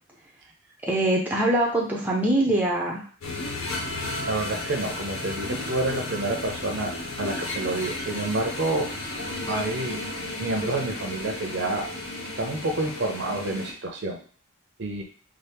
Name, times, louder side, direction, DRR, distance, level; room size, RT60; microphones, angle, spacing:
voice 1, 0.8-3.0, right 1 dB, 10° right, -2 dB, 0.5 m, -23 dB
sound 1, 3.2-13.7, left 2 dB, 80° left, 1.0 m, -33 dB
voice 2, 4.3-8.9 9.5-10.0 10.4-11.9 12.4-14.2 14.8-15.0, right 2 dB, 55° right, 3 dB, 0.6 m, -28 dB
4.2 x 2.0 x 3.4 m, 0.44 s
head